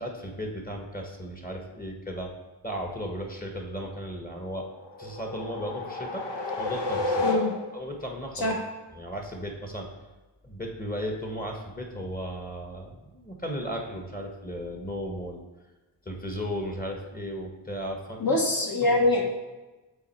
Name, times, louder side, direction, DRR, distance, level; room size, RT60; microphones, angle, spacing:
voice 1, 0.0-2.3 2.6-4.7 5.0-6.3 6.6-7.3 7.7-8.6 8.9-9.9 10.4-15.4 16.0-18.4 18.8-19.1, equal, 20° left, 1 dB, 1.2 m, -35 dB
sound 1, 4.7-7.9, left 2 dB, 70° left, 1.0 m, -31 dB
voice 2, 18.2-19.3, left 2 dB, 50° left, 0 dB, 1.4 m, -24 dB
7.0 x 3.8 x 4.5 m, 1.1 s
cardioid pair, 55°, 44 cm